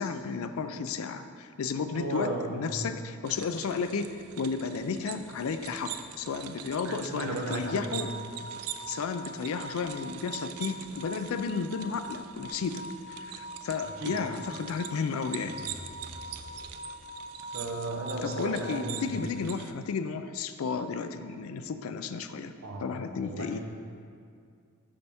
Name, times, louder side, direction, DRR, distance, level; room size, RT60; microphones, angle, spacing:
voice 1, 0.0-4.1 4.4-8.1 8.9-15.7 18.2-22.5 22.8-23.6, left 5 dB, 70° left, 9 dB, 0.4 m, -33 dB
voice 2, 1.9-2.7 6.8-8.1 13.8-14.2 17.5-19.3 22.6-23.6, right 2 dB, 70° right, 1 dB, 0.8 m, -35 dB
sound 1, 3.3-19.7, right 10 dB, 90° right, 0.4 m, -44 dB
sound 2, 7.4-19.6, equal, 30° right, 0.6 m, -44 dB
sound 3, 15.3-17.2, left 1 dB, 45° left, 1.1 m, -49 dB
6.8 x 5.5 x 3.5 m, 2.3 s
head